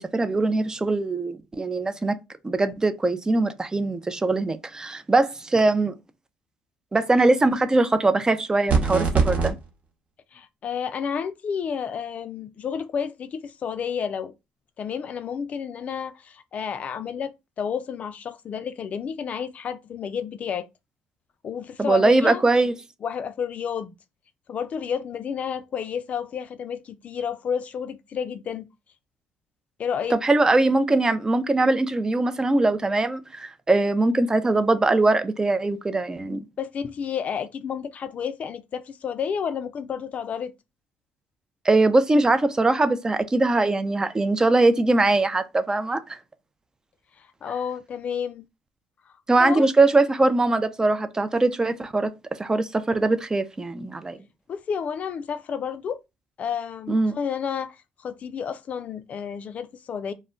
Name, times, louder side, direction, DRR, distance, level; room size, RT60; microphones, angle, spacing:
voice 1, 0.0-2.1 2.4-5.9 6.9-9.6 21.8-22.7 30.1-36.5 41.6-46.2 49.3-52.1 52.4-54.2 56.9-57.2, right 2 dB, 20° right, 0.4 m, -21 dB
sound 1, 8.7-9.5, right 5 dB, 50° right, 0.9 m, -21 dB
voice 2, 10.3-14.3 14.8-20.7 21.4-22.4 23.0-23.9 24.5-28.7 29.8-30.2 36.6-40.5 47.2-48.5 49.4-49.7 54.5-56.0 56.4-60.1, left 7 dB, 45° left, 0.3 m, -31 dB
2.1 x 2.1 x 3.6 m
supercardioid pair, 75°, 3 cm